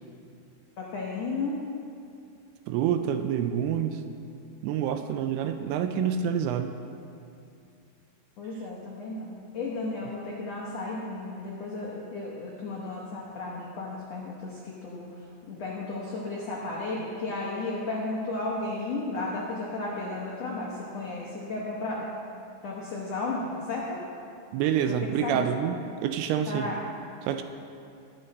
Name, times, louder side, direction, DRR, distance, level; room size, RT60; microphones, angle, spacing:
voice 1, 0.8-1.7 8.4-22.1 22.6-24.0 24.8-25.4 26.5-26.8, left 2 dB, 80° left, -4 dB, 1.4 m, -34 dB
voice 2, 2.7-4.0 4.6-6.7 24.5-26.7 27.3-27.4, right 8 dB, 80° right, 8 dB, 2.4 m, -27 dB
19.5 x 7.4 x 4.2 m, 2.5 s
omnidirectional pair, 4.8 m